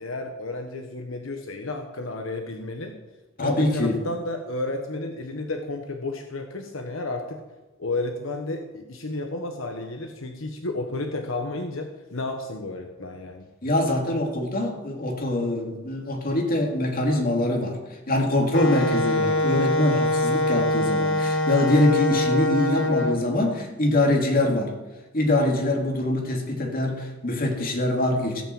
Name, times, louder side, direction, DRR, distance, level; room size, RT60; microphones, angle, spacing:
voice 1, 0.0-3.0 3.4-7.4 7.8-13.4, left 2 dB, 80° left, 4 dB, 1.1 m, -32 dB
voice 2, 3.4-4.0 13.6-24.7 25.1-28.4, left 1 dB, 45° left, 1 dB, 2.4 m, -24 dB
Wind instrument woodwind instrument, 18.5-23.2, left 1 dB, 65° left, 1.3 m, -23 dB
16.5 x 5.9 x 7.7 m, 1.1 s
head